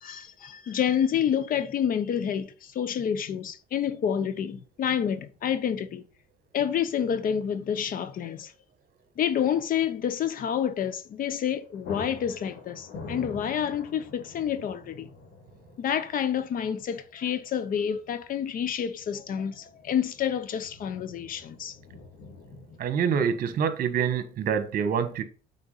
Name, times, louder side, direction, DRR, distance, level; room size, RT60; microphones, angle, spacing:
voice 1, 0.0-6.0 6.5-8.5 9.2-15.1 15.8-21.7, left 8 dB, 55° left, 1.0 m, -28 dB
sound 1, 6.9-7.0 7.3-7.4 11.0-11.3 11.5-22.9, left 3 dB, 85° left, 4.2 m, -46 dB
voice 2, 22.8-25.2, right 7 dB, 60° right, 1.5 m, -26 dB
8.4 x 4.6 x 5.6 m
cardioid pair, 110°, 17 cm